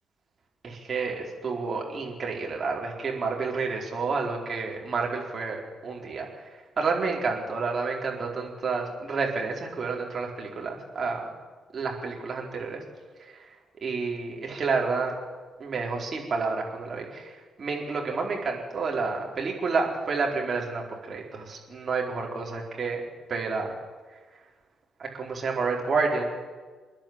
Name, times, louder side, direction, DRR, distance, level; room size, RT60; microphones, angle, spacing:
voice 1, 0.6-11.3 11.7-12.8 13.2-13.5 13.8-15.1 15.6-23.0 23.3-23.7 25.0-26.3, right 4 dB, 40° right, 0 dB, 4.6 m, -30 dB
28.0 x 10.5 x 8.9 m, 1.4 s
figure-of-eight pair, 40°, 0 cm